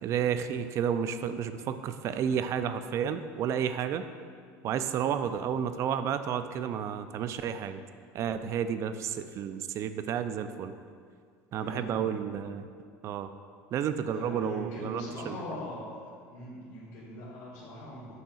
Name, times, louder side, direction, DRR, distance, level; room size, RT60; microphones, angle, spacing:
voice 1, 0.0-4.0 4.6-7.8 8.1-10.7 11.5-12.7 13.0-13.3 13.7-15.4, right 8 dB, 40° right, 10 dB, 0.4 m, -31 dB
voice 2, 11.5-12.0 14.1-15.9 16.3-18.1, equal, 70° left, -9 dB, 1.7 m, -40 dB
8.9 x 5.8 x 2.4 m, 2.1 s
supercardioid pair, 125°, 7 cm